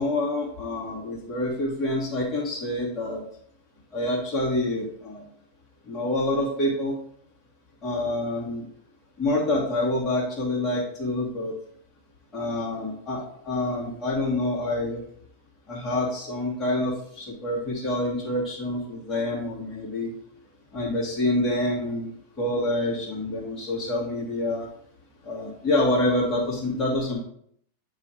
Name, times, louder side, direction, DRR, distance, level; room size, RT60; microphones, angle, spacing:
voice 1, 0.0-3.2 3.9-5.2 5.9-7.0 7.8-8.6 9.2-11.5 12.3-15.0 15.7-20.1 20.7-22.1 22.4-24.7 25.2-27.2, left 1 dB, 20° left, -6 dB, 2.5 m, -27 dB
9.5 x 3.3 x 4.5 m, 0.65 s
figure-of-eight pair, 90°, 0 cm